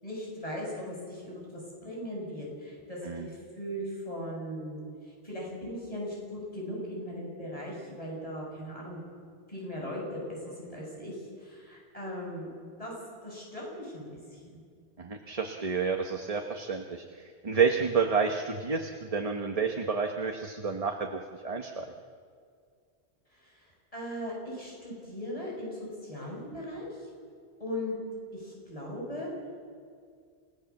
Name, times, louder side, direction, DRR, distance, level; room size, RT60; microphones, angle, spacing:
voice 1, 0.0-9.0 9.5-12.5 12.8-12.9 13.2-14.6 23.3-27.1 27.6-28.0 28.3-29.3, equal, 35° left, -3 dB, 7.4 m, -39 dB
voice 2, 15.0-17.0 17.4-21.8, right 5 dB, 35° right, 3 dB, 1.1 m, -29 dB
29.0 x 17.0 x 7.3 m, 2.1 s
omnidirectional pair, 1.1 m